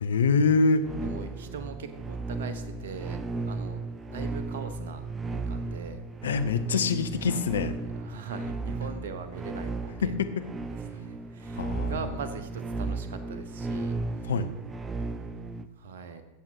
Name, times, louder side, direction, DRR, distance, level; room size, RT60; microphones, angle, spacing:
voice 1, 0.0-0.9 6.2-7.7 10.0-10.3 11.6-11.9 14.3-14.5, left 4 dB, 65° left, 9 dB, 0.8 m, -25 dB
sound 1, 0.8-15.7, right 3 dB, 20° right, 0.6 m, -35 dB
voice 2, 0.9-3.2 3.5-6.0 8.0-10.1 10.6-14.3 15.8-16.2, right 5 dB, 60° right, 10 dB, 1.1 m, -41 dB
15.0 x 7.5 x 4.8 m, 1.2 s
figure-of-eight pair, 90°, 0 cm